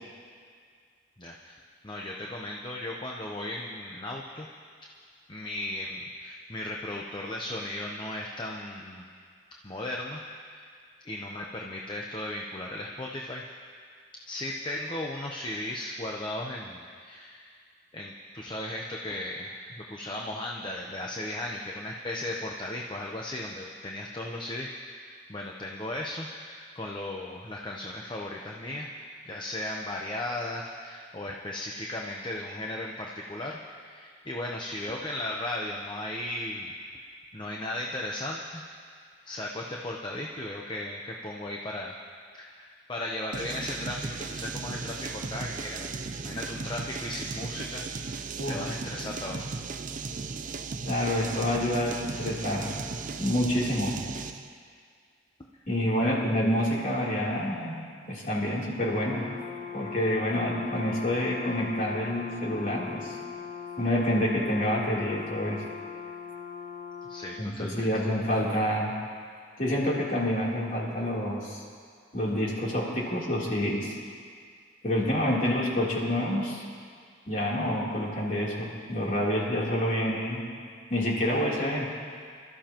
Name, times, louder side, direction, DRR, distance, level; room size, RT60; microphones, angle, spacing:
voice 1, 1.2-4.5 5.3-9.0 9.6-10.7 11.0-13.4 14.3-17.5 17.9-28.9 29.3-36.7 37.3-38.6 39.2-41.9 42.3-45.9 46.2-47.9 48.1-49.5 56.0-56.1 67.0-67.9, left 1 dB, 25° left, -1 dB, 0.8 m, -36 dB
sound 1, 43.3-54.5, right 4 dB, 45° right, 0.6 m, -36 dB
voice 2, 50.8-52.7 53.2-53.9 55.7-57.8 58.0-59.3 59.7-63.2 63.8-65.6 67.4-68.9 69.6-71.6 72.1-73.9 74.8-76.6 77.3-80.4 80.9-81.9, left 1 dB, 45° left, -5 dB, 3.3 m, -28 dB
Brass instrument, 58.8-67.5, left 6 dB, 60° left, 1.8 m, -40 dB
25.5 x 13.5 x 3.0 m, 2.1 s
head